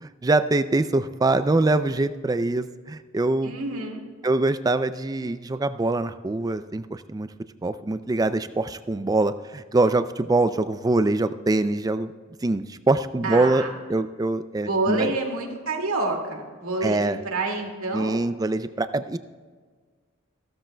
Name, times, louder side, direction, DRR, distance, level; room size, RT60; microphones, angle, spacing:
voice 1, 0.0-3.5 4.2-7.3 7.6-12.1 12.4-13.6 13.9-15.1 16.8-17.2 17.9-19.2, right 2 dB, 15° right, 12 dB, 0.3 m, -24 dB
voice 2, 3.4-4.0 13.2-13.7 14.7-18.2, right 2 dB, 80° right, 0 dB, 2.2 m, -28 dB
15.0 x 13.0 x 2.2 m, 1.5 s
head